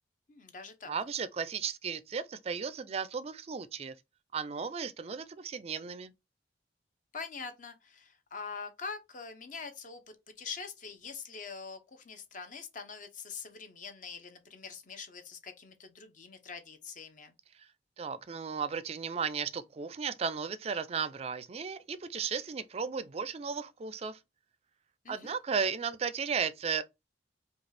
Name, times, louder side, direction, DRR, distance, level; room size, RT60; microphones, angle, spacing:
voice 1, 0.3-0.9 7.1-10.0 10.4-17.3 25.0-25.4, left 5 dB, 45° left, 0.8 m, -44 dB
voice 2, 0.9-3.9 4.3-6.1 18.0-24.2 25.1-26.8, right 6 dB, 35° right, 0.4 m, -35 dB
5.0 x 2.3 x 3.3 m
head